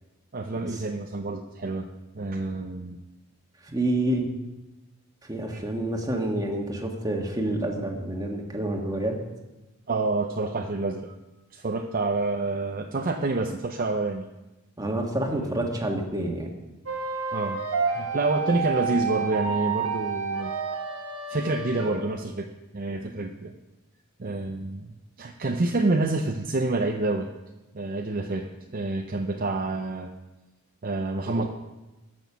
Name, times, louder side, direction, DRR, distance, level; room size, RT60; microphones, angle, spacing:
voice 1, 0.3-1.9 2.1-3.0 5.5-5.7 9.9-11.2 11.5-14.3 15.3-15.7 17.3-20.5 21.3-22.5 22.7-23.5 24.2-24.9 25.2-27.3 27.7-28.5 28.7-30.1 30.8-31.5, right 2 dB, 40° right, 4 dB, 0.5 m, -28 dB
voice 2, 3.7-4.2 5.3-9.2 14.8-16.5 31.3-31.5, right 1 dB, 15° right, 1 dB, 1.5 m, -28 dB
sound 1, 16.9-22.0, right 5 dB, 80° right, 1.7 m, -29 dB
14.0 x 6.3 x 6.1 m, 1.1 s
head